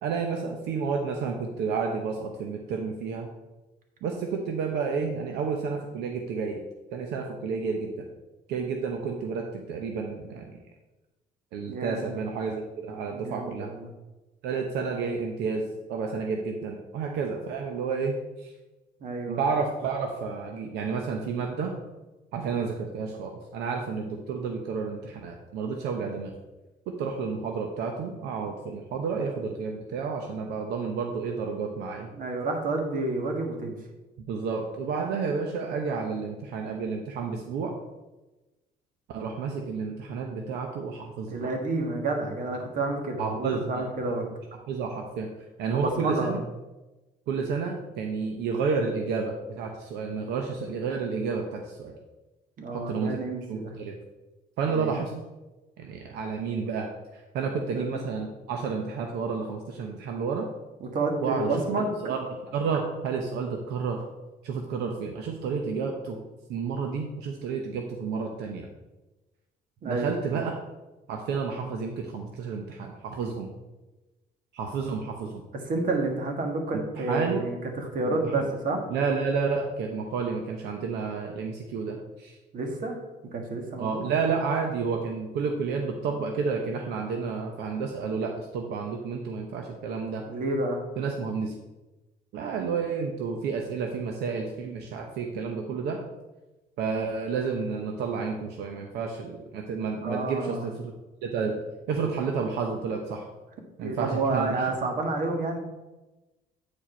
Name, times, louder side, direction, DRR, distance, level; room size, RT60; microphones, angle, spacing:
voice 1, 0.0-3.3 4.0-6.6 6.9-8.1 8.5-10.6 11.5-13.7 14.4-15.6 15.9-18.5 19.3-21.7 22.3-26.3 26.9-32.1 34.3-37.7 39.1-41.5 43.2-43.8 44.7-45.3 45.6-46.4 47.3-51.9 52.7-53.1 53.5-53.9 54.6-55.1 55.8-56.9 57.1-60.5 61.2-61.6 62.0-64.0 64.4-66.2 66.5-68.7 69.8-70.5 71.1-73.5 74.5-75.4 76.7-77.4 78.1-78.5 78.9-82.4 83.8-90.2 91.0-91.5 92.3-96.0 96.8-100.7 101.2-103.3 103.8-104.6, right 5 dB, 80° right, 3 dB, 0.9 m, -30 dB
voice 2, 11.7-12.1 13.1-13.9 19.0-19.5 32.1-33.7 41.3-44.3 45.7-46.4 52.6-53.8 54.7-55.0 57.7-58.0 60.8-61.9 69.8-70.4 75.5-78.8 82.5-83.0 83.2-84.1 90.3-90.8 99.9-100.7 103.8-105.6, right 2 dB, 55° right, 3 dB, 1.7 m, -30 dB
8.7 x 4.8 x 4.4 m, 1.1 s
cardioid pair, 110°, 17 cm